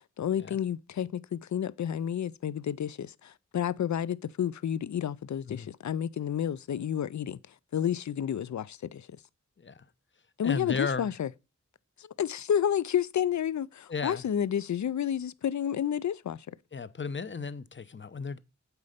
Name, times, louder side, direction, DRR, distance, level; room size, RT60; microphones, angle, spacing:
voice 1, 0.0-7.4 7.7-9.1 10.4-11.3 12.0-16.6, left 9 dB, 70° left, 0.5 m, -30 dB
voice 2, 10.4-11.1 13.9-14.2 16.7-18.4, left 5 dB, 40° left, 0.7 m, -34 dB
8.0 x 4.3 x 5.1 m
wide cardioid pair, 50°, 30 cm